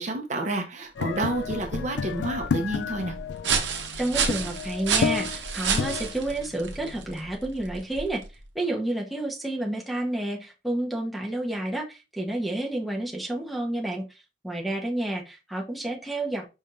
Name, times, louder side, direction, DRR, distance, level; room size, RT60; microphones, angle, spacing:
voice 1, 0.0-3.1, right 2 dB, 40° right, 0.8 m, -29 dB
sound 1, 1.0-7.3, left 6 dB, 70° left, 0.3 m, -32 dB
sound 2, 1.0-8.4, right 6 dB, 80° right, 0.9 m, -31 dB
voice 2, 4.0-8.2 8.5-16.4, right 1 dB, ahead, 0.9 m, -30 dB
5.4 x 3.4 x 2.5 m
head